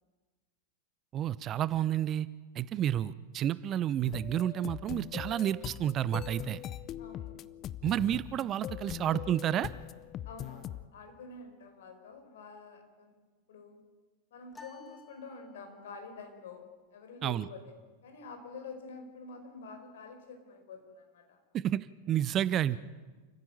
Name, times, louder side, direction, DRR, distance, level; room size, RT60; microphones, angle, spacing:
voice 1, 1.1-2.3 2.5-6.6 7.8-9.7 17.2-17.5 21.5-22.8, right 11 dB, 30° right, 18 dB, 0.7 m, -30 dB
sound 1, 4.0-10.8, left 11 dB, 30° left, 0.7 m, -41 dB
voice 2, 7.0-7.4 10.2-13.1 13.5-13.8 14.3-16.6 16.9-17.7 18.0-21.4, left 4 dB, 60° left, 5 dB, 4.9 m, -48 dB
sound 2, 14.5-16.0, left 4 dB, 15° left, 2.1 m, -54 dB
28.5 x 15.5 x 8.8 m, 1.3 s
figure-of-eight pair, 90°, 0 cm